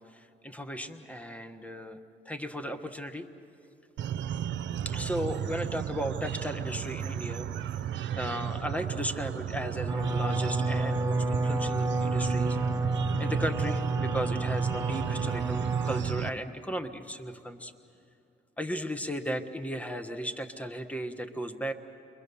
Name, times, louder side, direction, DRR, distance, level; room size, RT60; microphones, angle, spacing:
voice 1, 0.0-2.0 2.2-3.3 4.8-12.6 13.2-17.7 18.6-21.7, equal, 5° left, 9 dB, 1.3 m, -35 dB
sound 1, 4.0-16.3, right 9 dB, 70° right, 0.7 m, -34 dB
sound 2, 9.9-16.0, right 2 dB, 10° right, 1.1 m, -30 dB
30.0 x 23.0 x 7.0 m, 2.7 s
cardioid pair, 90°, 20 cm